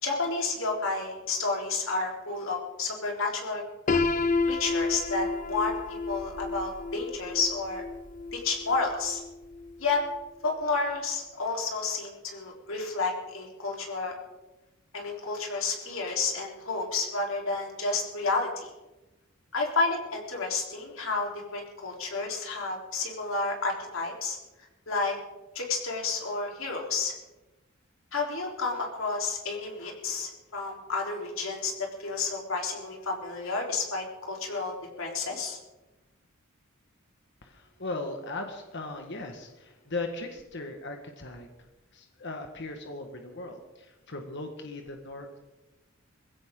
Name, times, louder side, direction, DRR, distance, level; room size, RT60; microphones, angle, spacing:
voice 1, 0.0-3.6 3.9-4.1 4.4-7.8 8.3-9.2 9.8-10.0 10.4-14.1 14.9-18.7 19.5-24.4 24.9-25.2 25.5-27.1 28.1-35.6, left 3 dB, 70° left, 0 dB, 3.8 m, -31 dB
Piano, 3.9-9.7, left 3 dB, 40° left, 0.7 m, -31 dB
voice 2, 37.4-41.5 41.9-45.5, left 2 dB, 55° left, 4 dB, 1.6 m, -38 dB
21.0 x 16.0 x 3.8 m, 1.0 s
head